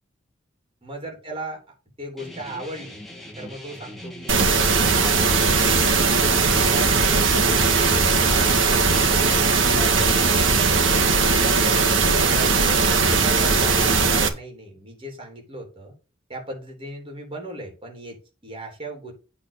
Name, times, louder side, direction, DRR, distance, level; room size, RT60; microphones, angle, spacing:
voice 1, 0.8-1.6 2.0-3.0 3.4-5.8 6.4-9.3 9.7-11.0 11.4-15.9 16.3-19.1, right 1 dB, 30° right, 2 dB, 3.3 m, -37 dB
sound 1, 2.2-11.9, left 1 dB, ahead, 2.4 m, -40 dB
sound 2, 4.3-14.3, right 4 dB, 70° right, 1.7 m, -19 dB
8.7 x 4.1 x 6.4 m, 0.32 s
head